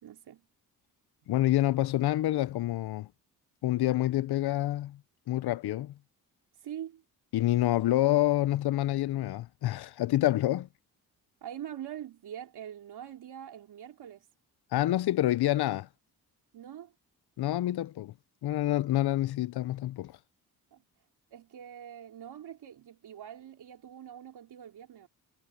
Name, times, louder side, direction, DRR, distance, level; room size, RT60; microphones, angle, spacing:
voice 1, 0.0-0.4 6.6-7.0 11.4-14.3 16.5-16.9 20.7-20.8 21.3-25.1, right 10 dB, 80° right, 3.8 m, -44 dB
voice 2, 1.3-3.1 3.6-5.0 5.3-5.9 7.3-10.7 14.7-15.9 17.4-18.1 18.4-20.2, left 15 dB, 75° left, 0.7 m, -27 dB
cardioid pair, 60°, 39 cm